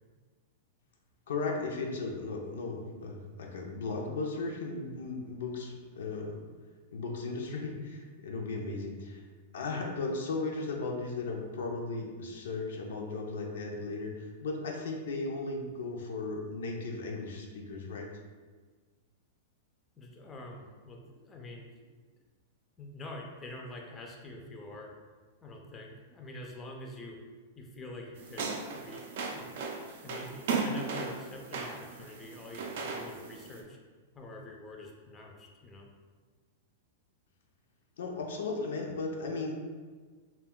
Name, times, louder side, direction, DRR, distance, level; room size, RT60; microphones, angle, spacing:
voice 1, 1.3-6.4 6.9-9.2 9.5-18.1 38.0-39.6, left 3 dB, 80° left, 1 dB, 0.4 m, -36 dB
voice 2, 20.0-21.9 22.8-24.9 25.4-27.2 27.6-29.5 30.0-33.8 34.1-35.9, left 1 dB, 20° left, 0 dB, 0.4 m, -46 dB
sound 1, 28.2-33.6, right 4 dB, 65° right, 0.4 m, -37 dB
2.2 x 2.1 x 3.5 m, 1.4 s
hypercardioid pair, 130°, 0 cm